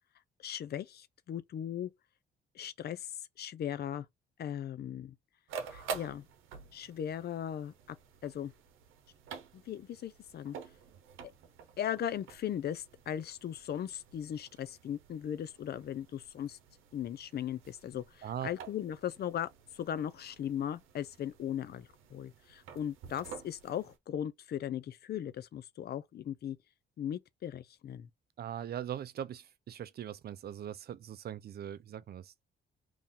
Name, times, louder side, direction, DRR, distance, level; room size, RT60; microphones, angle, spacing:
voice 1, 0.4-1.9 2.5-4.1 4.4-5.1 5.7-6.3 6.7-8.0 8.2-8.5 9.5-10.6 11.8-16.6 16.9-26.6 27.0-28.1, left 10 dB, 55° left, 0.5 m, -38 dB
sound 1, 5.5-24.0, right 6 dB, 90° right, 0.8 m, -49 dB
voice 2, 18.2-18.7 28.4-32.4, right 10 dB, 50° right, 0.5 m, -41 dB
3.0 x 2.7 x 3.7 m
cardioid pair, 90°, 20 cm